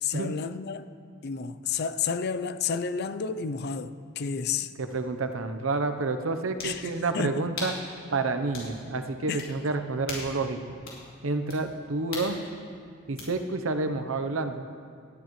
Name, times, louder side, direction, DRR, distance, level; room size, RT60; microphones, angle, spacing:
voice 1, 0.0-0.9 1.2-4.7 6.6-7.5 9.3-9.5, left 6 dB, 55° left, 0.5 m, -31 dB
voice 2, 4.8-7.7 8.1-10.8 11.2-12.4 13.1-14.6, right 3 dB, 90° right, 0.8 m, -29 dB
sound 1, 4.9-5.0 6.6-6.8 7.6-7.8 8.5-8.7 9.4-9.5 10.0-10.4 10.8-11.0 11.5-11.6 12.1-12.3 13.2-13.3, left 3 dB, 85° left, 3.7 m, -37 dB
18.5 x 13.0 x 3.2 m
head